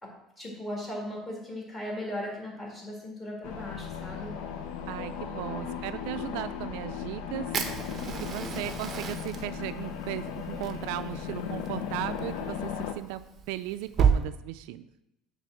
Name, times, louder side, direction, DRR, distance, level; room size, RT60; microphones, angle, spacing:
voice 1, 0.0-4.3 5.5-5.7 8.4-8.6, left 1 dB, 15° left, -3 dB, 2.2 m, -38 dB
sound 1, 3.4-12.9, left 7 dB, 85° left, 0.7 m, -36 dB
voice 2, 4.9-7.5 8.1-13.2 13.5-14.9, right 15 dB, 85° right, 12 dB, 0.3 m, -36 dB
Fire, 7.5-14.2, right 7 dB, 25° right, 0.6 m, -32 dB
7.6 x 3.4 x 6.3 m, 0.87 s
cardioid pair, 155°, 0 cm